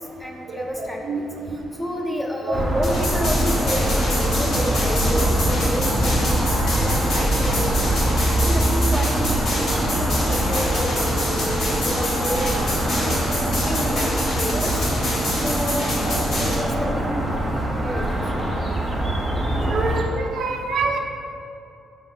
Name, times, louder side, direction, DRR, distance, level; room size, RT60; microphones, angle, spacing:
voice 1, 0.0-8.0 8.4-12.7 13.4-14.8 15.3-16.0 16.4-18.5, equal, 10° left, 0 dB, 0.5 m, -30 dB
voice 2, 1.0-1.6 19.7-21.0, right 4 dB, 70° right, 2 dB, 0.4 m, -26 dB
sound 1, 2.5-20.0, right 1 dB, 25° right, 0.8 m, -23 dB
sound 2, 2.8-16.5, left 1 dB, 75° left, 1.2 m, -27 dB
sound 3, 10.2-18.8, left 1 dB, 45° left, 0.8 m, -35 dB
5.3 x 2.1 x 3.6 m, 2.7 s
cardioid pair, 90°, 0 cm